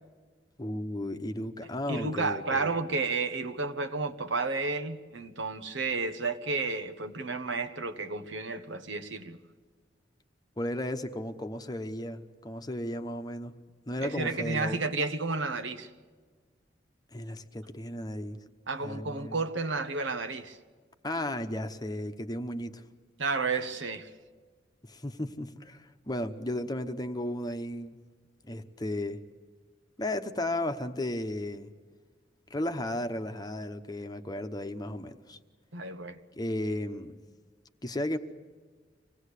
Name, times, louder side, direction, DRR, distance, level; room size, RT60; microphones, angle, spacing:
voice 1, 0.6-2.7 10.6-13.5 13.9-14.8 17.1-18.4 18.8-19.4 21.0-22.8 24.8-28.0 28.5-29.2 30.0-31.7 32.5-35.4 36.4-37.2 37.8-38.2, left 1 dB, 20° left, 1.0 m, -34 dB
voice 2, 1.9-9.4 14.0-15.9 18.7-20.6 23.2-24.1 35.7-36.2, right 3 dB, 80° right, 1.3 m, -32 dB
25.5 x 18.0 x 8.3 m
head